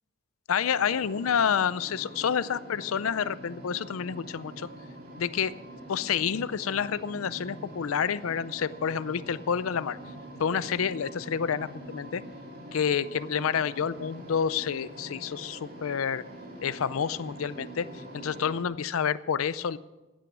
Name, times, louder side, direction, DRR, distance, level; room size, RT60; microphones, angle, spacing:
voice 1, 0.5-4.7 5.2-5.5 5.9-10.0 10.4-12.2 12.7-16.2 16.6-17.9 18.1-19.8, left 7 dB, 90° left, 17 dB, 0.5 m, -29 dB
sound 1, 0.6-18.6, right 1 dB, 45° right, 3.1 m, -44 dB
16.0 x 9.2 x 6.1 m, 1.1 s
head